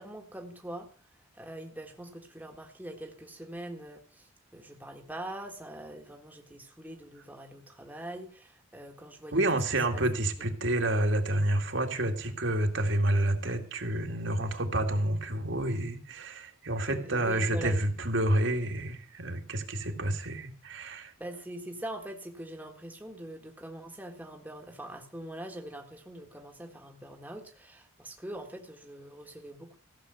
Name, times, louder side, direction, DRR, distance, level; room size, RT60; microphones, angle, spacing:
voice 1, 0.0-9.4 9.9-10.0 16.9-17.8 21.2-29.8, right 1 dB, 10° right, 2 dB, 1.6 m, -43 dB
voice 2, 9.3-21.1, right 1 dB, 60° right, 4 dB, 2.1 m, -29 dB
15.5 x 7.1 x 7.9 m, 0.40 s
head